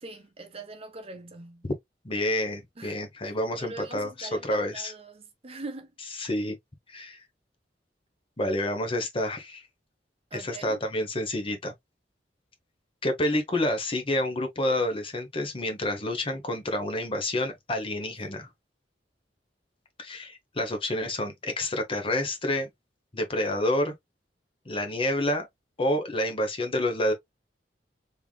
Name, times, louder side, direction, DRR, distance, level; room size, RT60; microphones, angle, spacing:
voice 1, 0.0-1.7 2.8-3.0 3.2-5.9 10.3-10.8, right 3 dB, 35° right, 0.8 m, -42 dB
voice 2, 2.0-4.9 6.2-6.6 6.9-7.2 8.4-9.6 10.3-11.7 13.0-18.5 20.0-22.7 23.1-23.9 24.7-25.5 25.8-27.1, left 1 dB, 30° left, 0.9 m, -28 dB
3.6 x 3.4 x 2.3 m
head